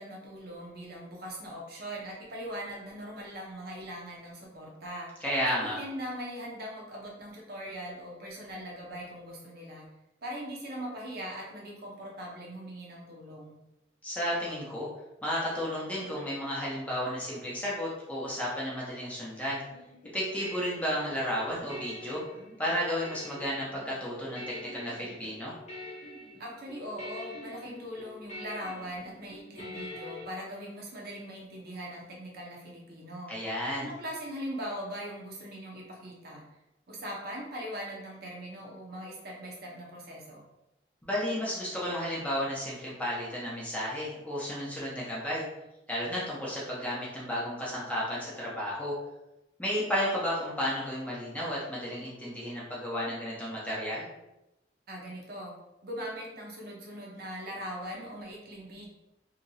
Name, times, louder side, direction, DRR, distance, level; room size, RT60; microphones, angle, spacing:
voice 1, 0.0-5.1 5.5-9.9 10.2-13.6 26.4-33.3 33.8-36.4 36.9-40.4 54.9-55.5 55.8-58.9, equal, 55° right, -2 dB, 0.7 m, -40 dB
voice 2, 5.2-5.8 14.0-14.9 15.2-19.6 20.1-22.2 22.6-25.5 33.3-33.9 41.0-45.4 45.9-48.9 49.6-54.1, equal, 10° left, -6 dB, 0.8 m, -33 dB
sound 1, 19.7-30.2, left 1 dB, 35° left, 0.8 m, -45 dB
2.9 x 2.8 x 2.7 m, 0.92 s
head